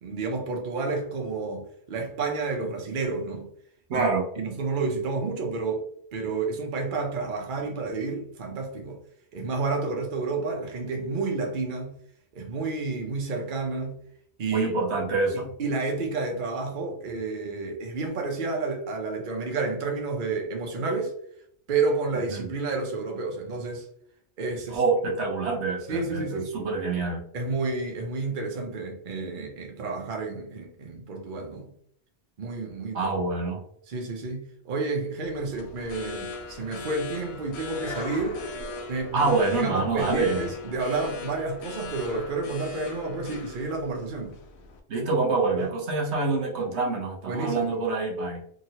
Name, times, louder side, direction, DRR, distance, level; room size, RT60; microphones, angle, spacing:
voice 1, 0.0-3.5 3.9-4.1 4.4-5.8 6.1-9.0 9.3-11.9 12.3-13.9 14.4-14.7 15.6-21.1 21.7-23.9 24.4-24.8 25.9-26.6 27.3-31.7 32.4-33.1 33.9-38.4 38.9-39.3 39.6-44.3 45.6-45.7 47.3-47.7, right 3 dB, 50° right, 0.8 m, -30 dB
voice 2, 3.9-4.3 14.5-15.5 22.3-22.5 24.7-27.2 32.9-33.6 39.1-40.5 44.9-48.4, right 3 dB, 75° right, 1.1 m, -26 dB
sound 1, 35.2-44.8, left 3 dB, 75° left, 0.8 m, -39 dB
2.9 x 2.8 x 2.8 m
omnidirectional pair, 1.1 m